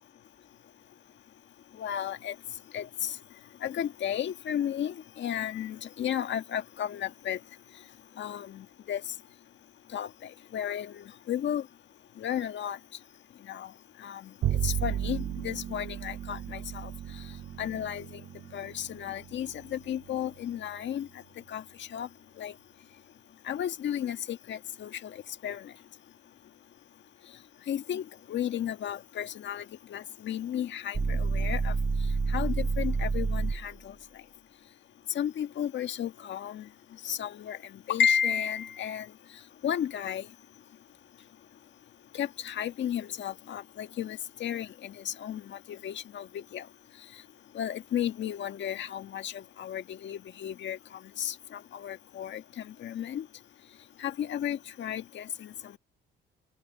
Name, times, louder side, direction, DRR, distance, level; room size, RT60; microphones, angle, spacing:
voice 1, 1.7-2.3 2.7-3.2 3.6-7.4 8.2-9.0 9.9-11.7 12.2-12.8 13.4-13.7 14.0-14.3 14.6-16.9 17.6-18.2 18.5-21.2 21.5-22.1 22.4-22.5 23.4-25.7 27.7-31.7 32.3-33.9 35.1-36.7 37.0-39.1 39.6-40.3 42.1-46.7 47.5-53.3 54.0-55.8, left 9 dB, 65° left, 1.6 m, -33 dB
Bowed string instrument, 14.4-20.9, right 10 dB, 65° right, 1.1 m, -35 dB
sound 1, 30.9-33.7, right 4 dB, 20° right, 0.6 m, -28 dB
open air
cardioid pair, 90°, 20 cm